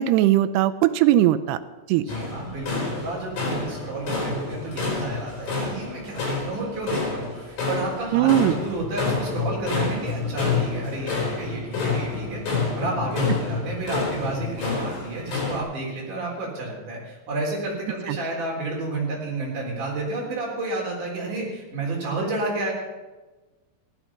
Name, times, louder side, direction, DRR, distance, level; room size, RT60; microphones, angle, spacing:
voice 1, 0.0-1.6 1.9-2.0 8.1-8.6 18.1-18.2, right 13 dB, 80° right, 12 dB, 2.6 m, -19 dB
voice 2, 1.9-22.7, right 2 dB, 50° right, -2 dB, 4.9 m, -31 dB
sound 1, 2.1-15.6, left 4 dB, 55° left, 5.6 m, -28 dB
15.5 x 11.5 x 5.9 m, 1.2 s
omnidirectional pair, 4.8 m